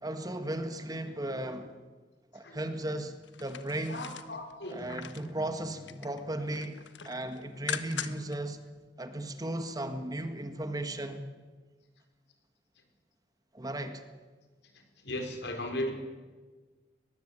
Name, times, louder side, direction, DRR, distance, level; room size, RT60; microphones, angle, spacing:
voice 1, 0.0-1.8 2.3-3.1 3.4-4.1 4.7-8.6 9.0-11.2 13.5-14.0, right 1 dB, 20° right, 1.7 m, -36 dB
sound 1, 3.2-5.3 5.7-6.2 6.5-8.4 8.7-8.8, left 7 dB, 90° left, 1.4 m, -41 dB
voice 2, 3.9-4.9 15.0-15.9, left 1 dB, 70° left, 5.0 m, -36 dB
22.0 x 21.5 x 8.8 m
head